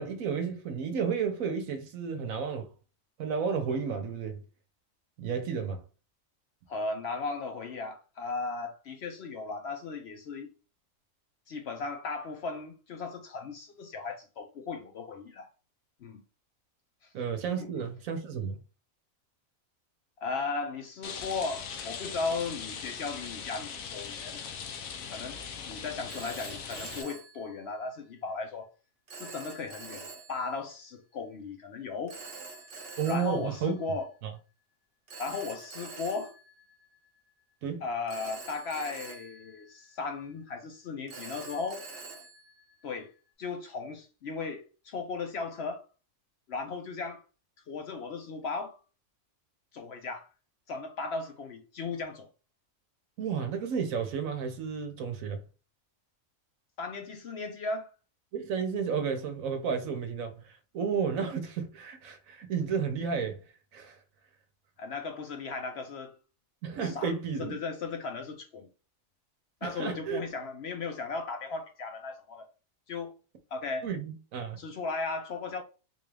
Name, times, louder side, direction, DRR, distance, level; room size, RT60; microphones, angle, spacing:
voice 1, 0.0-2.7 3.2-4.4 5.2-5.8 17.1-18.6 33.0-33.8 34.2-34.3 37.6-37.8 53.2-55.4 58.3-63.4 63.7-64.0 66.6-67.6 69.6-70.2 73.8-74.6, right 6 dB, 80° right, 1.2 m, -32 dB
voice 2, 6.7-10.5 11.5-15.5 16.0-16.2 17.6-17.7 20.2-24.4 25.1-25.4 25.7-28.7 29.1-32.2 33.1-34.1 35.2-36.3 37.8-41.8 42.8-43.1 43.4-45.8 46.5-47.2 47.7-48.7 49.7-50.3 50.7-52.3 56.8-57.9 64.8-66.1 66.8-67.1 67.4-68.7 69.6-72.5 72.9-73.1 73.5-73.9 74.6-75.6, left 4 dB, 60° left, 0.7 m, -36 dB
Rain, 21.0-27.0, left 6 dB, 90° left, 1.1 m, -40 dB
Telephone, 25.0-25.1 26.1-28.1 29.1-30.8 32.1-34.3 35.1-37.4 38.1-40.4 41.1-43.3, right 3 dB, 50° right, 0.9 m, -46 dB
3.7 x 2.4 x 3.3 m
omnidirectional pair, 1.4 m